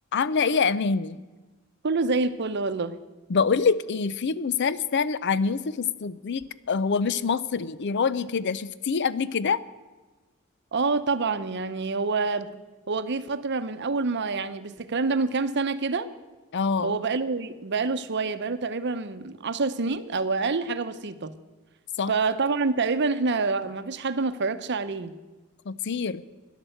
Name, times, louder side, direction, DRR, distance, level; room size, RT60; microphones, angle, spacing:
voice 1, 0.1-1.2 3.3-9.6 16.5-17.0 22.0-22.1 25.7-26.2, left 5 dB, 55° left, 17 dB, 0.5 m, -25 dB
voice 2, 1.8-3.0 10.7-12.5 12.9-16.1 16.8-21.3 22.1-25.1, right 4 dB, 55° right, 11 dB, 0.8 m, -27 dB
12.5 x 10.5 x 7.8 m, 1.2 s
head